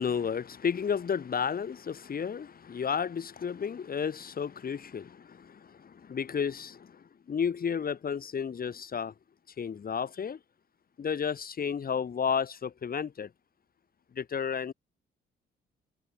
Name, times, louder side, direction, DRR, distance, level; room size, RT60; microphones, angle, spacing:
voice 1, 0.0-9.1 9.6-10.4 11.0-13.3 14.1-14.7, left 7 dB, 45° left, 7.9 m, -32 dB
cardioid pair, 90°, 20 cm